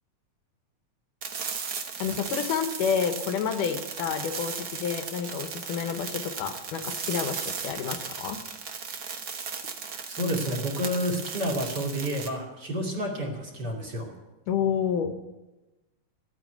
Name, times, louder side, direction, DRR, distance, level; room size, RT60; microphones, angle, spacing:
sound 1, 1.2-12.3, right 5 dB, 70° right, 0.9 m, -36 dB
voice 1, 2.0-8.4 14.5-15.1, left 7 dB, 90° left, 8 dB, 2.7 m, -29 dB
voice 2, 10.1-14.1, equal, 35° right, -1 dB, 2.8 m, -30 dB
13.5 x 9.1 x 9.2 m, 1.1 s
omnidirectional pair, 3.7 m